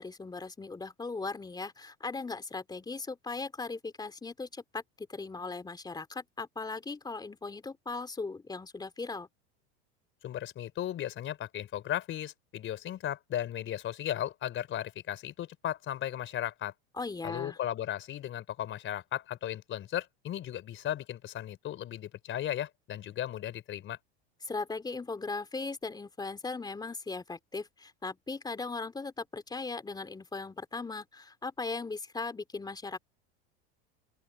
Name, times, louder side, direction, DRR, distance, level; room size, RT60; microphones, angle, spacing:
voice 1, 0.0-9.3 17.0-17.6 24.4-33.0, left 3 dB, 10° left, 3.4 m, -38 dB
voice 2, 10.2-16.7 17.2-24.0, left 11 dB, 40° left, 4.3 m, -36 dB
open air
supercardioid pair, 120°, 32 cm